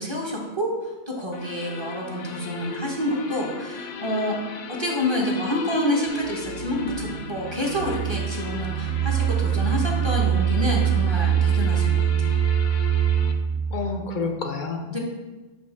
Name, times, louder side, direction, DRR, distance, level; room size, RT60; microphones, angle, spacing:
voice 1, 0.0-4.4 4.7-12.3 14.9-15.0, left 1 dB, 25° right, -2 dB, 1.0 m, -28 dB
sound 1, 1.3-13.3, left 5 dB, 75° left, 1.0 m, -37 dB
sound 2, 6.1-13.9, right 9 dB, 70° right, 0.8 m, -24 dB
voice 2, 13.7-15.0, left 4 dB, 50° left, 5 dB, 0.7 m, -29 dB
8.1 x 3.1 x 4.5 m, 1.2 s
omnidirectional pair, 1.3 m